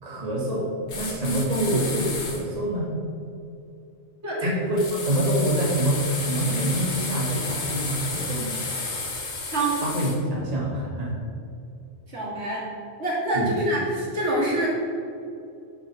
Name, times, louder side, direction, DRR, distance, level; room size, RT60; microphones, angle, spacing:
voice 1, 0.0-0.7 0.9-2.9 4.4-8.6 9.8-11.2 13.3-13.6, right 1 dB, 35° right, -4 dB, 1.6 m, -26 dB
sound 1, 0.9-2.4 4.8-10.2, left 3 dB, 75° left, 1.6 m, -32 dB
voice 2, 12.1-12.6 13.0-14.7, right 1 dB, 70° right, -5 dB, 2.5 m, -25 dB
8.3 x 5.8 x 5.9 m, 2.5 s
omnidirectional pair, 1.2 m